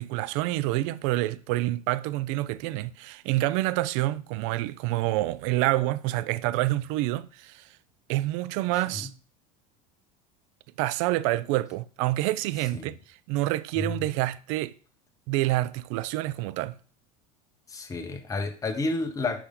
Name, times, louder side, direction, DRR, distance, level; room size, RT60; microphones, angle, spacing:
voice 1, 0.0-7.6 8.1-9.1 10.8-13.0 13.3-14.7 15.3-16.7, right 16 dB, 65° right, 0.5 m, -27 dB
voice 2, 17.7-19.5, left 3 dB, 20° left, 1.2 m, -30 dB
8.3 x 5.3 x 3.8 m
supercardioid pair, 125°, 18 cm